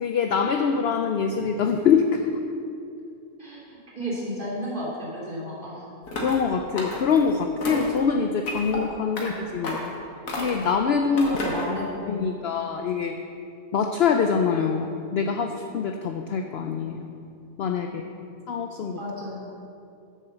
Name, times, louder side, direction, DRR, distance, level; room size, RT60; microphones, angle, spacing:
voice 1, 0.0-2.2 6.2-9.9 10.4-11.4 12.1-13.1 13.7-17.1 17.6-18.0 18.5-19.0, left 6 dB, 70° left, 5 dB, 0.6 m, -24 dB
voice 2, 3.4-5.9 11.2-12.4 17.8-18.0 19.0-19.4, equal, 30° right, -7 dB, 3.0 m, -33 dB
sound 1, 6.1-6.4 6.8-7.2 7.6-8.0 8.4-8.8 9.2-9.3 9.6-9.9 10.3-10.7 11.2-11.7, left 1 dB, 90° left, 2.1 m, -31 dB
8.1 x 7.0 x 6.9 m, 2.5 s
omnidirectional pair, 1.6 m